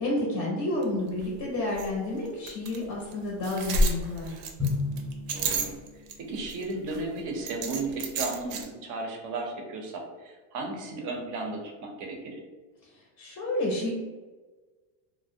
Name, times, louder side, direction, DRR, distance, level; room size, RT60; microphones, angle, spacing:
voice 1, 0.0-4.4 13.2-13.9, left 1 dB, 35° left, -3 dB, 0.5 m, -30 dB
sound 1, 0.8-0.9 1.2-1.3 1.8-1.9 2.5-2.8 3.1-3.2 3.4-6.1 6.5-7.0 7.5-8.6, right 1 dB, 80° right, 0.6 m, -29 dB
Drum, 4.6-6.8, left 4 dB, 5° right, 0.7 m, -34 dB
voice 2, 5.3-5.7 6.2-12.4, right 2 dB, 40° right, 2 dB, 0.5 m, -34 dB
2.4 x 2.0 x 2.5 m, 1.3 s
supercardioid pair, 130°, 48 cm